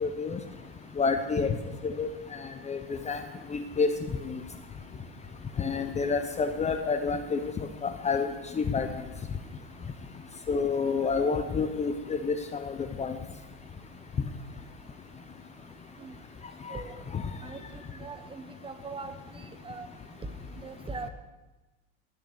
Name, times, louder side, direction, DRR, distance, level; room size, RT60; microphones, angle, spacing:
voice 1, 0.0-0.4 1.0-1.6 1.8-2.1 2.7-2.8 3.1-3.2 3.5-3.9 4.3-4.4 5.6-7.4 7.8-8.3 8.6-8.9 10.5-13.1 17.1-17.2, left 5 dB, 20° left, 8 dB, 0.9 m, -28 dB
voice 2, 18.0-19.1 19.6-19.9 20.6-21.1, right 4 dB, 15° right, 9 dB, 1.1 m, -40 dB
20.0 x 6.8 x 6.7 m, 1.1 s
supercardioid pair, 120°, 33 cm